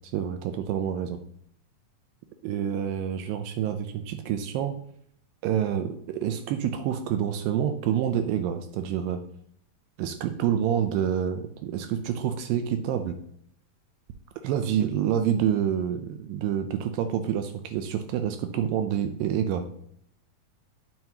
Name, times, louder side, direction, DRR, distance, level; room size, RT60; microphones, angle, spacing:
voice 1, 0.1-1.2 2.4-4.7 5.4-9.2 10.0-13.2 14.4-19.7, right 9 dB, 80° right, 7 dB, 2.1 m, -27 dB
8.6 x 4.0 x 2.8 m, 0.69 s
omnidirectional pair, 4.3 m